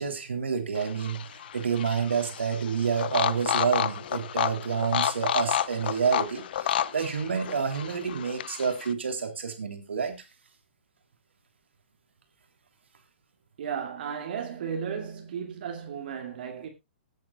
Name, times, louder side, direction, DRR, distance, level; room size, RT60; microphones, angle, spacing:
voice 1, 0.0-10.2, right 6 dB, 75° right, 3.3 m, -29 dB
sound 1, 0.8-8.9, left 10 dB, 55° left, 0.7 m, -31 dB
voice 2, 13.6-16.7, right 7 dB, 55° right, 2.5 m, -34 dB
19.5 x 8.5 x 2.4 m
figure-of-eight pair, 120°, 6 cm